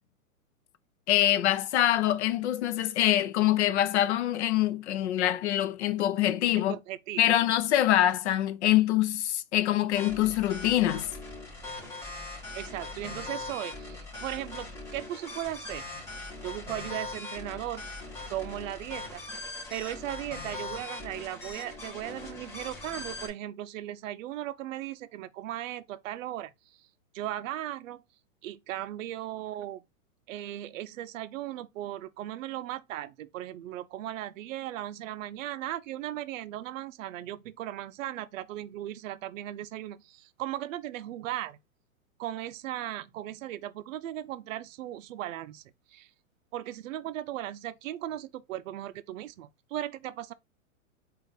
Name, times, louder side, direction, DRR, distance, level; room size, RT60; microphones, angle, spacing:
voice 1, 1.1-6.8 7.2-11.1, left 13 dB, 55° left, 0.6 m, -25 dB
voice 2, 6.6-7.4 12.5-15.8 16.4-17.8 18.3-19.2 19.7-26.5 27.1-28.0 28.4-29.8 30.3-41.6 42.2-45.6 45.9-46.1 46.5-50.3, right 13 dB, 65° right, 0.5 m, -37 dB
sound 1, 9.9-23.3, left 2 dB, 5° left, 0.8 m, -41 dB
3.9 x 2.5 x 3.4 m
hypercardioid pair, 150°, 42 cm